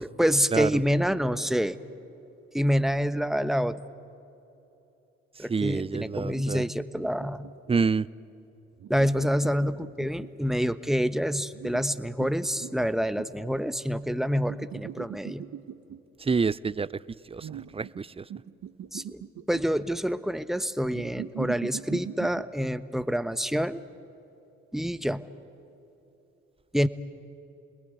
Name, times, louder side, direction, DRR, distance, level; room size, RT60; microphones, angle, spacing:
voice 1, 0.0-1.8 2.5-3.8 5.4-7.5 8.9-15.5 18.9-19.2 19.5-23.8 24.7-25.2 26.7-26.9, equal, ahead, 12 dB, 1.1 m, -27 dB
voice 2, 5.4-6.6 7.7-8.1 16.2-17.0 17.3-18.3, right 5 dB, 20° right, 20 dB, 0.5 m, -28 dB
sound 1, 6.0-7.7 8.8-10.5 11.5-13.5 14.5-16.0 17.4-18.0 18.3-19.9 20.9-22.5, right 10 dB, 60° right, 1.2 m, -41 dB
29.0 x 20.5 x 9.3 m, 2.9 s
hypercardioid pair, 50°, 32 cm